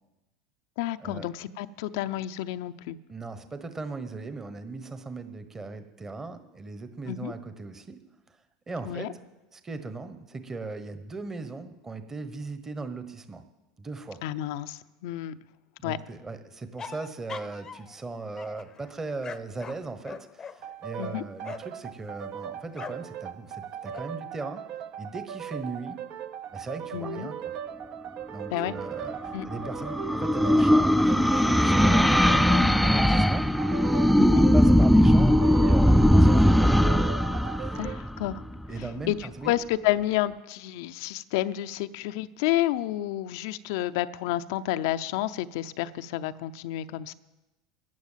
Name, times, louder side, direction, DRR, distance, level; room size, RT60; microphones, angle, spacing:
voice 1, 0.8-3.0 7.1-7.3 8.8-9.1 14.2-15.3 15.8-16.0 21.0-21.2 26.9-27.3 28.5-28.8 29.3-29.4 34.2-34.5 37.7-38.4 39.1-47.1, left 14 dB, 70° left, 13 dB, 0.6 m, -30 dB
voice 2, 3.1-8.0 8.7-9.1 9.5-13.4 13.8-14.2 15.8-24.6 25.0-26.0 26.5-27.4 28.3-33.5 34.4-36.8 37.6-37.8 38.7-39.5, right 3 dB, 20° right, 10 dB, 1.2 m, -38 dB
sound 1, 16.8-18.0 18.4-21.8 22.7-23.1 23.5-24.0, left 6 dB, 30° left, 0.7 m, -43 dB
sound 2, 20.6-38.0, right 9 dB, 55° right, 0.8 m, -39 dB
sound 3, 29.1-38.7, equal, ahead, 0.4 m, -20 dB
14.0 x 9.7 x 7.4 m, 1.0 s
hypercardioid pair, 90°, 2 cm